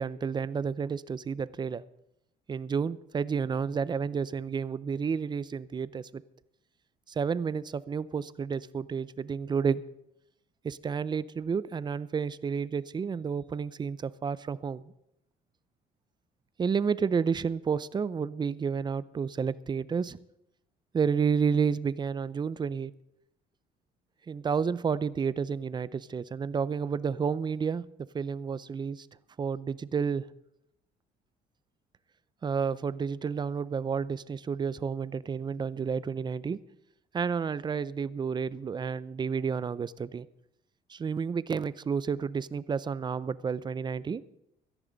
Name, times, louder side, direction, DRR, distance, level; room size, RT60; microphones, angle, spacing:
voice 1, 0.0-1.8 2.5-6.2 7.2-9.8 10.6-14.9 16.6-20.2 20.9-22.9 24.3-27.9 28.1-29.1 29.4-30.2 32.4-36.6 37.1-40.3 40.9-44.2, right 6 dB, 25° right, 18 dB, 0.5 m, -30 dB
17.5 x 13.5 x 4.0 m, 0.81 s
cardioid pair, 110°, 17 cm